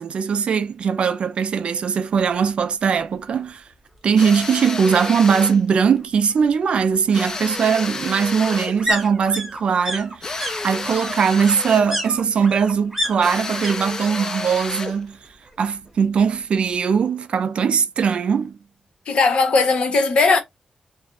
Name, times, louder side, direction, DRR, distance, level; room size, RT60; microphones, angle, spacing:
voice 1, 0.0-3.6 4.0-15.2 15.6-18.6, right 6 dB, 60° right, 0.3 m, -20 dB
sound 1, 3.3-3.4 3.7-4.7 6.0-13.8 14.0-14.6 14.8-15.9 16.2-16.3, equal, 10° right, 0.7 m, -31 dB
sound 2, 4.2-5.6 7.1-8.8 10.2-11.9 13.2-15.0, left 3 dB, 30° left, 0.3 m, -30 dB
voice 2, 19.1-20.4, left 4 dB, 60° left, 0.7 m, -17 dB
2.4 x 2.0 x 2.8 m
wide cardioid pair, 170°, 2 cm